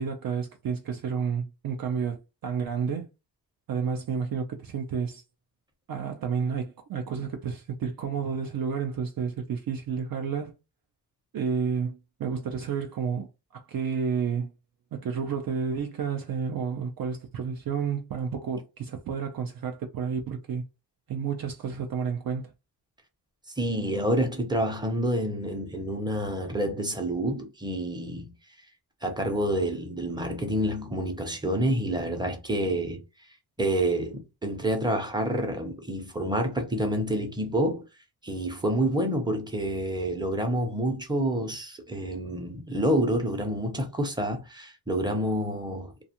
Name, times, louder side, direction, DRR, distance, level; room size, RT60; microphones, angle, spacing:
voice 1, 0.0-2.2 2.4-3.1 3.7-5.2 5.9-10.6 11.3-13.3 13.7-14.5 14.9-20.6 21.1-22.5, right 6 dB, 60° right, 0.5 m, -30 dB
voice 2, 23.6-28.3 29.0-33.0 33.6-37.9 38.2-46.0, right 1 dB, 10° right, 0.7 m, -28 dB
2.5 x 2.3 x 2.8 m
wide cardioid pair, 120°, 40 cm